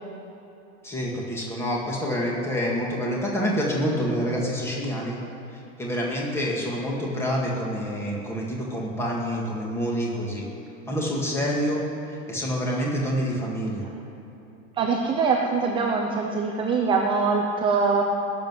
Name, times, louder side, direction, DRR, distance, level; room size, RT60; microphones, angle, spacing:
voice 1, 0.8-5.2 5.8-10.4 10.9-13.8, equal, 5° left, -3 dB, 2.0 m, -27 dB
voice 2, 14.8-18.0, right 4 dB, 10° right, 0 dB, 0.6 m, -23 dB
19.0 x 7.7 x 9.7 m, 2.9 s
supercardioid pair, 175°, 42 cm